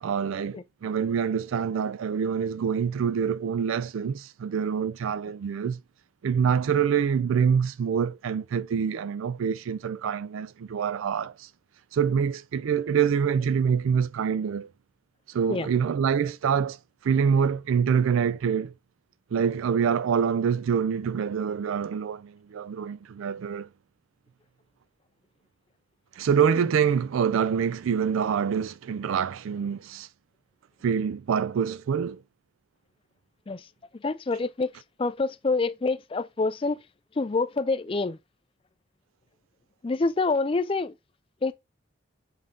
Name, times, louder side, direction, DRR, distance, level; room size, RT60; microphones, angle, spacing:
voice 1, 0.0-5.8 6.2-11.5 11.9-14.7 15.3-16.8 17.0-18.7 19.3-23.7 26.2-30.1 30.8-32.2, right 7 dB, 80° right, 0.3 m, -26 dB
voice 2, 34.0-34.7 35.0-36.8 37.2-38.2 39.8-40.9 41.4-41.5, left 3 dB, 25° left, 0.3 m, -26 dB
7.5 x 3.7 x 3.8 m
head